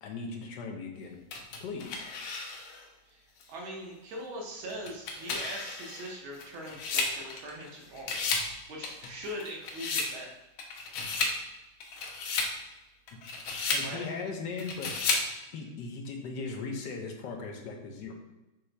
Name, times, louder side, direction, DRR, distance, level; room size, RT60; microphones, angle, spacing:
voice 1, 0.0-1.2 1.6-2.1 13.1-13.2 13.7-18.1, left 4 dB, 70° left, 2 dB, 1.2 m, -38 dB
sound 1, 1.3-2.8 3.4-3.5 4.7-7.7 8.0-8.5 8.8-10.1 10.6-11.4 11.8-12.5 13.1-13.9 14.6-15.3, left 4 dB, 90° left, 1.5 m, -33 dB
voice 2, 3.1-10.3 13.8-14.0, equal, 85° right, -1 dB, 1.6 m, -41 dB
5.5 x 2.9 x 3.2 m, 0.99 s
omnidirectional pair, 2.2 m